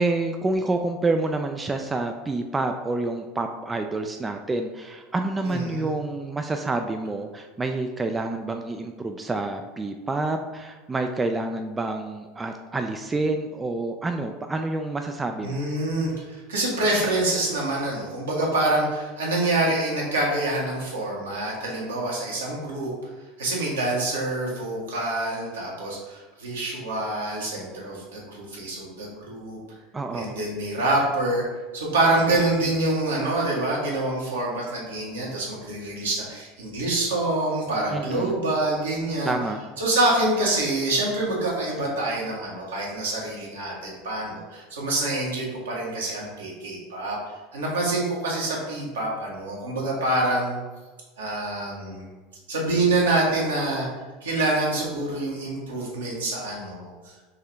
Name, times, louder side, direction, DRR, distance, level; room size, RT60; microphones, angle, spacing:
voice 1, 0.0-15.6 29.9-30.4 37.9-38.4 39.2-39.6, right 2 dB, 15° right, 5 dB, 0.3 m, -28 dB
voice 2, 5.4-5.9 15.4-22.9 23.4-29.6 30.1-31.4 31.7-39.3 39.8-47.2 47.5-50.6 51.2-52.1 52.5-53.9 54.2-57.1, right 2 dB, 70° right, -3 dB, 1.4 m, -26 dB
5.4 x 2.7 x 3.5 m, 1.3 s
figure-of-eight pair, 75°, 0 cm